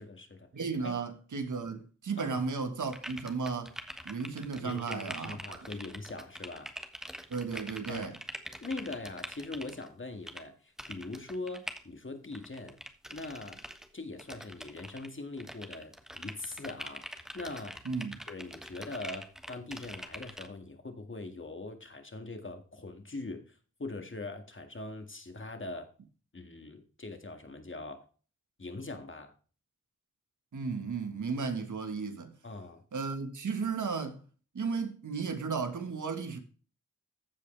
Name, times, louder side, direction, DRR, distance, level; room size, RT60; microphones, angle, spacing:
voice 1, 0.0-0.5 0.8-0.9 2.2-2.4 4.6-6.7 7.9-8.1 8.6-12.8 13.1-13.6 13.9-17.8 18.3-25.9 26.3-28.1 28.6-29.3 32.4-32.8, left 2 dB, 40° left, 2.0 m, -42 dB
voice 2, 0.5-3.7 4.0-5.7 7.3-8.1 17.8-18.2 30.5-32.3 32.9-34.2 34.5-36.4, right 5 dB, 80° right, 1.5 m, -34 dB
sound 1, 2.8-9.9 10.3-10.4 10.8-11.8 12.3-13.9 14.2-15.1 15.4-20.5, equal, ahead, 1.3 m, -44 dB
15.0 x 5.0 x 3.3 m
cardioid pair, 55°, 30 cm